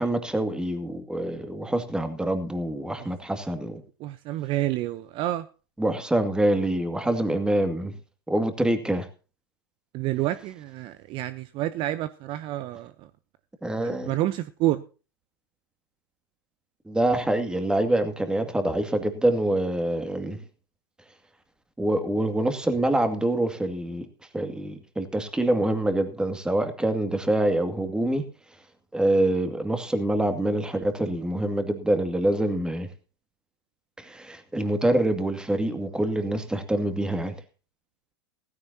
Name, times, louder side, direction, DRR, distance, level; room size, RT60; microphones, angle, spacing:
voice 1, 0.0-3.8 5.8-7.9 8.3-9.1 13.6-14.2 16.9-20.4 21.8-24.1 24.3-28.3 28.9-32.9 34.0-37.4, right 1 dB, 5° right, 2.3 m, -25 dB
voice 2, 4.0-5.5 9.9-13.1 13.8-14.8, right 14 dB, 45° right, 0.8 m, -29 dB
16.0 x 15.0 x 2.8 m
hypercardioid pair, 95°, 12 cm